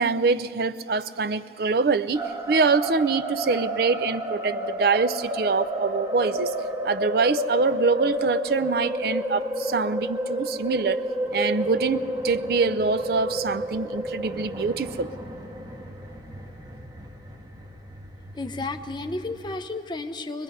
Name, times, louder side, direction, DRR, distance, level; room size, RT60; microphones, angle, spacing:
voice 1, 0.0-6.5 6.8-11.0 11.3-15.1, right 4 dB, 60° right, 14 dB, 0.5 m, -24 dB
sound 1, 2.1-19.5, equal, 25° right, 1.5 m, -31 dB
voice 2, 18.3-20.4, left 2 dB, 25° left, 7 dB, 0.8 m, -32 dB
24.0 x 20.0 x 5.5 m, 2.6 s
head